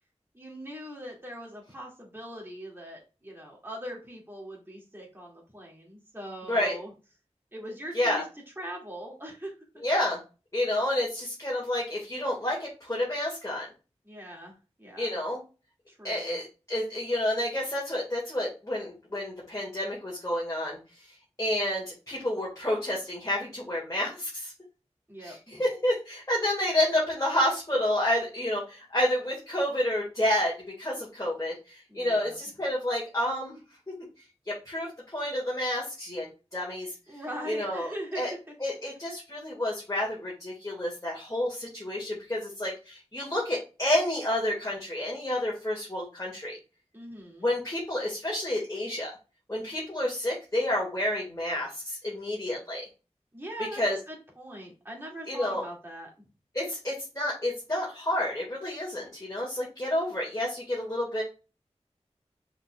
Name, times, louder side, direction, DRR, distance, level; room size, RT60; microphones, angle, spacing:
voice 1, 0.3-6.9 7.5-8.2 8.6-9.8 14.1-15.1 15.9-16.4 25.1-25.6 31.9-32.4 37.1-38.5 46.9-47.5 53.3-56.1, equal, 20° right, -2 dB, 2.1 m, -41 dB
voice 2, 9.8-10.2 10.5-13.7 15.0-15.4 16.0-20.8 21.4-24.5 25.2-33.6 33.9-34.0 34.5-36.3 36.5-36.9 37.5-38.3 38.6-46.6 47.4-49.1 49.5-52.8 53.7-54.0 55.3-55.6 56.5-61.2, left 1 dB, 30° left, -4 dB, 1.8 m, -29 dB
5.4 x 4.1 x 2.3 m, 0.32 s
wide cardioid pair, 50°, 12 cm